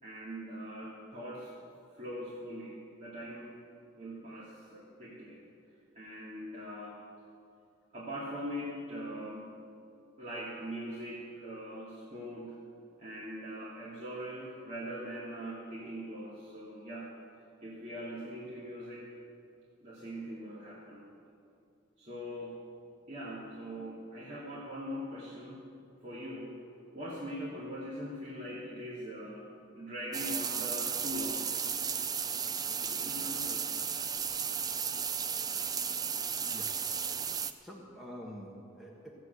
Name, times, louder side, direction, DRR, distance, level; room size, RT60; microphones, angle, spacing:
voice 1, 0.0-1.5 1.9-3.5 3.9-5.4 5.9-7.0 7.9-9.5 10.2-12.5 13.0-17.1 17.6-19.1 19.8-21.1 22.0-22.6 23.1-25.6 26.0-26.5 26.9-29.5 29.7-31.5 32.7-33.6, equal, 35° right, -8 dB, 2.4 m, -41 dB
sound 1, 30.1-37.5, right 7 dB, 20° right, 0.4 m, -34 dB
voice 2, 37.6-39.1, equal, ahead, -3 dB, 1.3 m, -47 dB
15.0 x 8.2 x 8.0 m, 2.4 s
head